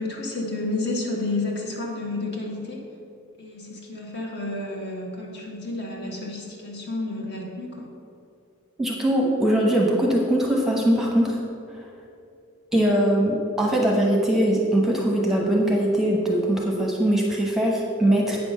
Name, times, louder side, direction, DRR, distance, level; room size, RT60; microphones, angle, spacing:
voice 1, 0.0-2.8 3.4-7.9, left 2 dB, 50° left, -1 dB, 1.6 m, -30 dB
voice 2, 8.8-11.4 12.7-18.4, right 1 dB, ahead, -1 dB, 1.0 m, -21 dB
8.5 x 6.1 x 6.4 m, 2.5 s
head